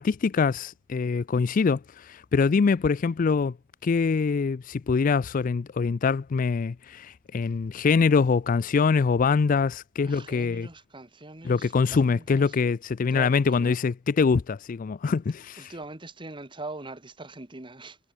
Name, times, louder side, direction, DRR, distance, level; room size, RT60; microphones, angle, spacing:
voice 1, 0.0-3.5 3.8-10.7 11.4-15.7, left 5 dB, 45° left, 0.4 m, -24 dB
voice 2, 10.1-12.6 13.1-13.8 15.6-18.0, right 2 dB, 25° right, 1.8 m, -42 dB
head